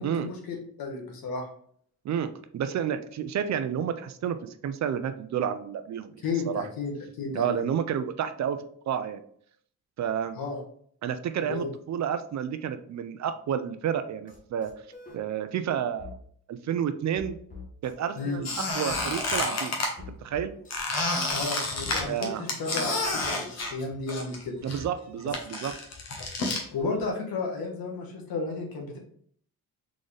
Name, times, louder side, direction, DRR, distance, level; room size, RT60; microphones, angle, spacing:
voice 1, 0.0-1.5 6.2-7.7 10.4-10.6 11.4-11.7 18.2-18.4 21.3-24.6 26.7-29.0, left 3 dB, 75° left, 0 dB, 1.4 m, -33 dB
voice 2, 2.0-6.7 7.3-8.6 8.9-9.2 10.0-10.4 11.0-14.7 15.1-16.1 16.5-17.4 17.8-19.7 20.1-20.5 22.0-22.4 24.6-25.7, right 8 dB, 50° right, 10 dB, 0.4 m, -30 dB
sound 1, 14.3-14.4 14.6-15.2 16.0-16.2 17.1-18.4 18.9-19.4 20.0-20.8 21.3-22.0, left 4 dB, 20° left, 1.1 m, -44 dB
Squeak, 18.4-19.9 20.7-24.4 24.7-26.6, left 2 dB, 45° left, 1.1 m, -30 dB
3.9 x 3.8 x 3.2 m, 0.62 s
cardioid pair, 130°, 36 cm